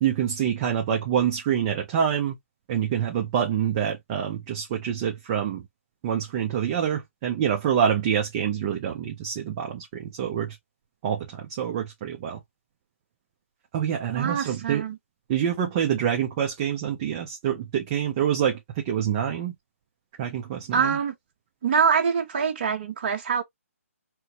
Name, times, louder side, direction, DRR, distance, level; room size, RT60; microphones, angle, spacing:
voice 1, 0.0-2.4 2.7-5.7 6.0-10.6 11.0-12.4 13.7-14.8 15.3-18.6 18.8-19.5 20.2-21.0, right 9 dB, 20° right, 0.4 m, -26 dB
voice 2, 14.1-15.0 20.7-21.1 21.6-23.4, right 6 dB, 40° right, 1.0 m, -24 dB
4.3 x 2.1 x 2.8 m
hypercardioid pair, 165°, 8 cm